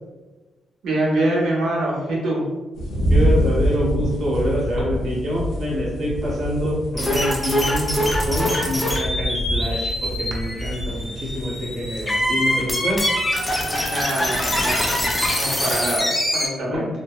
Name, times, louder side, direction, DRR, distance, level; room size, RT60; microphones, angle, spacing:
voice 1, 0.8-2.4 13.6-16.9, right 1 dB, 80° right, -3 dB, 0.7 m, -25 dB
sound 1, 2.7-13.9, equal, 85° left, 0.7 m, -26 dB
voice 2, 3.1-8.0 8.3-13.0 16.6-16.8, equal, 50° right, -4 dB, 0.8 m, -26 dB
sound 2, 7.0-16.5, left 1 dB, 20° left, 0.4 m, -24 dB
2.6 x 2.1 x 2.3 m, 1.2 s
cardioid pair, 130°, 0 cm